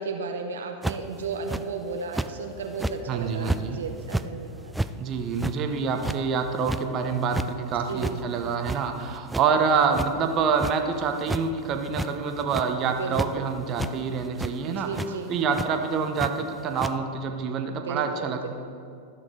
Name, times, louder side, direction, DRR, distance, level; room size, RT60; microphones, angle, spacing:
voice 1, 0.0-4.7 7.9-8.2 12.8-13.5 14.6-15.5 17.7-18.5, right 4 dB, 80° right, 4 dB, 0.7 m, -34 dB
sound 1, 0.8-1.1 1.5-1.6 2.1-2.3 2.7-3.0 3.4-3.6 4.0-4.3 4.7-4.9 5.3-5.6 6.0-6.2 6.6-6.8 7.2-7.5 8.0-8.1 8.5-9.0 9.3-9.4 9.9-10.1 10.6-10.7 11.2-11.4 11.9-12.1 12.4-12.7 13.1-13.3 13.8-13.9 14.4-14.5 14.9-15.1 15.5-15.7 16.2-16.3 16.8-16.9, right 1 dB, 5° right, 0.3 m, -29 dB
voice 2, 3.1-3.8 5.0-15.0 15.3-18.5, right 5 dB, 40° right, 5 dB, 0.9 m, -26 dB
13.5 x 6.0 x 3.8 m, 2.4 s
hypercardioid pair, 100°, 0 cm